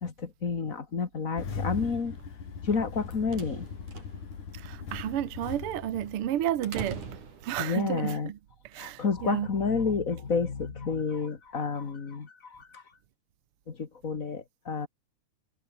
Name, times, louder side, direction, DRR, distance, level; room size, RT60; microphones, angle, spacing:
voice 1, 0.0-2.2 2.6-3.7 7.6-8.3 8.8-12.8 13.7-14.9, left 5 dB, 30° left, 1.8 m, -30 dB
Engine starting, 1.4-6.9, left 5 dB, 80° left, 5.6 m, -39 dB
sound 1, 2.9-8.0, right 5 dB, 85° right, 5.9 m, -44 dB
voice 2, 4.5-7.0 7.4-8.4 8.6-9.5, right 12 dB, 60° right, 1.7 m, -31 dB
omnidirectional pair, 3.4 m